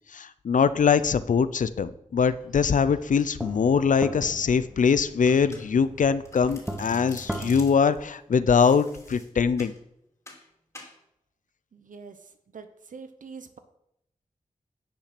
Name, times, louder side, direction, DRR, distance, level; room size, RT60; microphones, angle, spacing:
voice 1, 0.1-9.7, left 6 dB, 70° left, 15 dB, 0.5 m, -22 dB
sound 1, 2.2-2.4 2.8-7.6, right 1 dB, 5° right, 1.0 m, -38 dB
Domestic sounds home sounds, 5.3-5.9 6.2-8.0 8.6-9.8 10.3-10.5 10.7-11.0, left 1 dB, 20° left, 2.9 m, -47 dB
voice 2, 11.7-12.2 12.5-13.6, right 5 dB, 75° right, 9 dB, 0.8 m, -44 dB
10.0 x 6.0 x 5.9 m, 0.78 s
wide cardioid pair, 65°, 14 cm